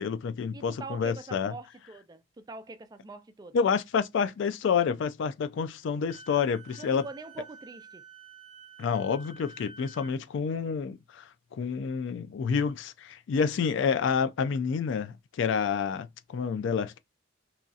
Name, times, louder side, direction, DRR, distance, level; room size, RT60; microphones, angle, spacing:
voice 1, 0.0-1.5 3.5-7.0 8.8-17.0, left 6 dB, 65° left, 0.3 m, -29 dB
voice 2, 0.5-3.5 6.8-8.0, right 3 dB, 20° right, 0.3 m, -44 dB
Wind instrument woodwind instrument, 6.1-10.1, right 4 dB, 35° left, 1.5 m, -50 dB
3.0 x 2.7 x 2.3 m
head